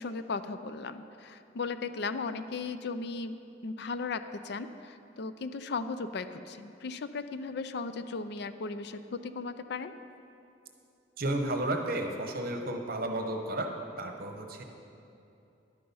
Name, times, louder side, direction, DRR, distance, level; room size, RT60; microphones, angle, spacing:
voice 1, 0.0-3.4 3.6-9.9, left 4 dB, 60° left, 11 dB, 0.4 m, -36 dB
voice 2, 11.2-13.7 14.0-14.6, right 1 dB, 55° right, 4 dB, 1.0 m, -32 dB
11.0 x 8.6 x 5.5 m, 2.7 s
head